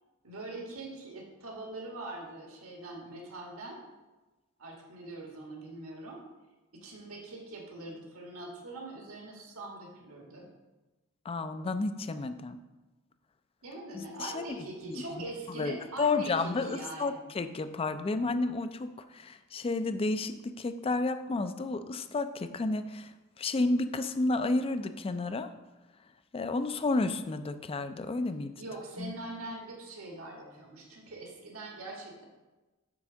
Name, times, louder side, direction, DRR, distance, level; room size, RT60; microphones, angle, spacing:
voice 1, 0.2-3.8 4.6-6.2 6.7-10.4 13.6-17.2 28.6-32.2, right 2 dB, 75° right, 0 dB, 1.5 m, -42 dB
voice 2, 11.3-12.6 13.9-14.4 14.9-15.0 15.6-23.1 23.4-25.5 26.3-28.5 29.0-29.1, left 3 dB, 25° left, 10 dB, 0.4 m, -31 dB
7.6 x 3.6 x 6.1 m, 1.1 s
head